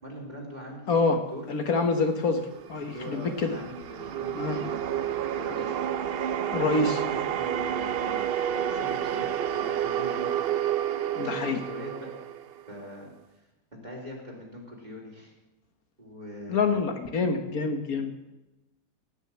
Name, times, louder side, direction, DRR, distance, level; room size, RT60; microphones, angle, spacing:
voice 1, 0.0-1.0 1.3-1.5 2.8-5.8 6.6-8.2 8.5-10.3 11.1-12.1 12.7-13.1 13.7-15.3 16.0-16.8, equal, 25° right, -2 dB, 3.5 m, -42 dB
voice 2, 0.9-1.2 1.5-3.6 4.4-4.6 6.5-7.0 11.2-11.6 16.5-18.1, left 4 dB, 65° left, 5 dB, 1.7 m, -26 dB
sound 1, 2.5-12.9, right 9 dB, 70° right, 0.5 m, -30 dB
17.5 x 6.4 x 8.8 m, 1.0 s
omnidirectional pair, 1.7 m